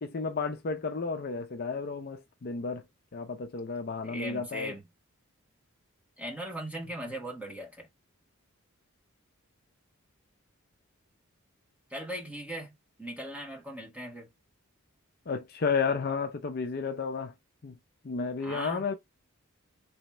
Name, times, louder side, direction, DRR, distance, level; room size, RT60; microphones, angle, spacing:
voice 1, 0.0-2.8 3.1-4.8 15.3-17.3 17.6-17.8 18.0-18.9, left 5 dB, 45° left, 0.5 m, -32 dB
voice 2, 4.0-4.8 6.2-7.9 11.9-12.7 13.0-14.3 18.4-18.8, right 1 dB, 5° right, 1.4 m, -39 dB
3.4 x 3.2 x 3.0 m
head